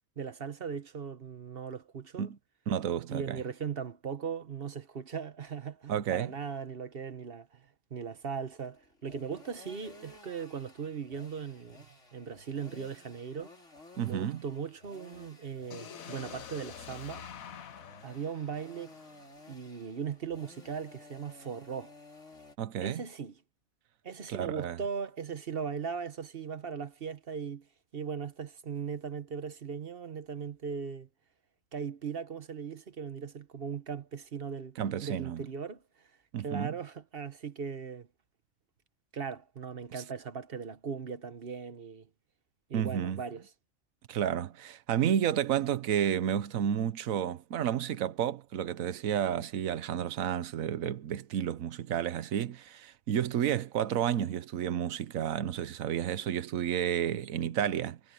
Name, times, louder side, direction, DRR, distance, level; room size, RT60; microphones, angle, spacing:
voice 1, 0.2-2.3 3.1-11.9 12.1-13.5 14.0-17.3 18.0-19.0 19.5-21.9 22.8-23.4 24.0-27.7 27.9-31.1 31.7-34.8 35.0-36.1 36.4-38.1 39.1-42.1 42.7-43.5, right 6 dB, 50° right, 1.1 m, -38 dB
voice 2, 2.7-3.4 5.9-6.3 14.0-14.4 22.6-23.0 24.3-24.8 34.8-35.4 36.3-36.7 42.7-43.2 44.1-58.1, right 9 dB, 80° right, 1.2 m, -31 dB
sound 1, 8.5-22.6, left 2 dB, 60° left, 4.4 m, -55 dB
sound 2, 15.7-19.6, left 8 dB, 85° left, 1.5 m, -47 dB
omnidirectional pair, 1.4 m